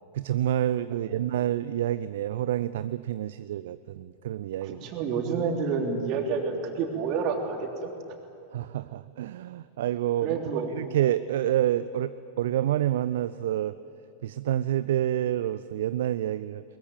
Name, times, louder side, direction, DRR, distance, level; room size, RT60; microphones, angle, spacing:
voice 1, 0.1-4.8 8.5-10.4 10.7-13.8 14.2-16.6, right 12 dB, 55° right, 14 dB, 0.5 m, -28 dB
voice 2, 4.8-7.9 10.2-10.7, right 5 dB, 40° right, 2 dB, 3.3 m, -29 dB
22.0 x 22.0 x 9.2 m, 2.7 s
figure-of-eight pair, 90°, 0 cm